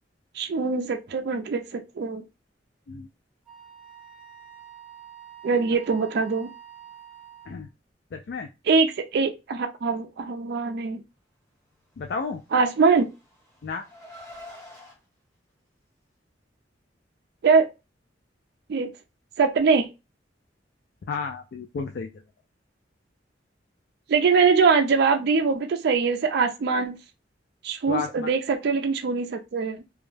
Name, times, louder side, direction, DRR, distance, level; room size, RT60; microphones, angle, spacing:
voice 1, 0.3-2.2 5.4-6.5 8.7-11.0 12.5-13.1 17.4-17.7 18.7-18.9 19.4-19.9 24.1-27.0 27.6-29.8, right 5 dB, 60° right, 0.4 m, -22 dB
Wind instrument woodwind instrument, 3.5-7.7, right 9 dB, 5° right, 0.8 m, -47 dB
voice 2, 8.1-8.5 12.0-12.4 13.6-13.8 21.1-22.1 27.9-28.3, left 5 dB, 60° left, 0.3 m, -32 dB
Car, 12.5-15.0, left 1 dB, 15° left, 1.0 m, -46 dB
2.3 x 2.0 x 3.2 m
head